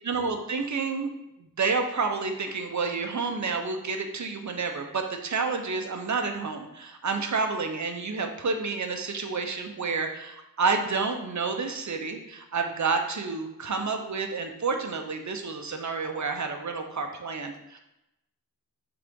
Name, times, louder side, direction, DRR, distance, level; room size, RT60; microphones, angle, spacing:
voice 1, 0.0-1.1 1.4-17.8, right 4 dB, 55° right, 4 dB, 0.9 m, -29 dB
6.4 x 4.0 x 3.7 m, 0.89 s
wide cardioid pair, 65°, 35 cm